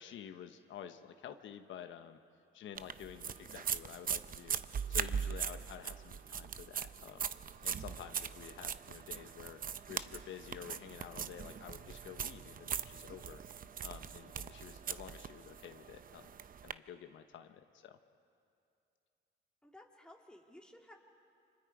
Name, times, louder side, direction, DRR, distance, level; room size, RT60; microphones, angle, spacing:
voice 1, 0.0-2.2 2.5-7.2 7.6-9.6 9.9-13.4 13.8-16.3 16.6-18.0, left 9 dB, 75° left, 7 dB, 1.0 m, -50 dB
sound 1, 2.8-16.7, right 7 dB, 45° right, 0.7 m, -41 dB
voice 2, 19.6-20.9, left 1 dB, 5° left, 0 dB, 2.8 m, -56 dB
29.0 x 26.0 x 4.9 m, 2.5 s
cardioid pair, 90°, 20 cm